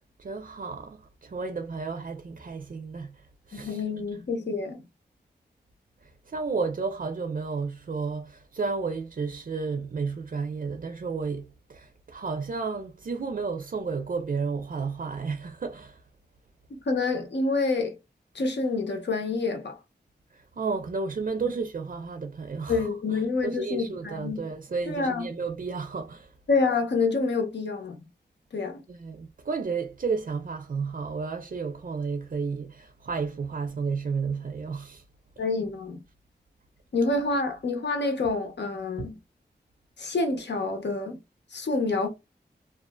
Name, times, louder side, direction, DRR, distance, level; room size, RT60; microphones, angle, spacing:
voice 1, 0.2-3.8 6.3-16.0 20.3-26.3 28.9-35.0 39.0-39.1, right 4 dB, 50° right, 0.5 m, -32 dB
voice 2, 3.5-4.8 16.7-18.0 18.3-19.8 22.7-24.4 24.9-25.3 26.5-28.0 28.5-28.8 35.4-36.0 36.9-39.1 40.0-41.2 41.5-42.1, left 3 dB, 75° left, 0.9 m, -27 dB
2.5 x 2.3 x 2.2 m
cardioid pair, 60°, 18 cm